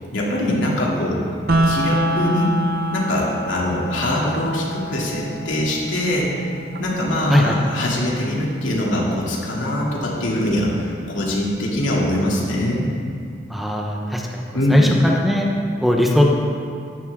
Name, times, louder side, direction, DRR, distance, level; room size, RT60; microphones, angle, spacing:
voice 1, 0.1-1.2 1.6-2.5 2.9-6.5 6.8-12.9 14.5-14.9, left 1 dB, 85° left, -4 dB, 2.8 m, -22 dB
sound 1, 1.5-11.5, equal, 50° right, 0.8 m, -27 dB
voice 2, 13.5-14.2 14.7-15.5 15.8-16.3, left 1 dB, ahead, -1 dB, 0.9 m, -18 dB
14.5 x 12.0 x 3.7 m, 2.4 s
head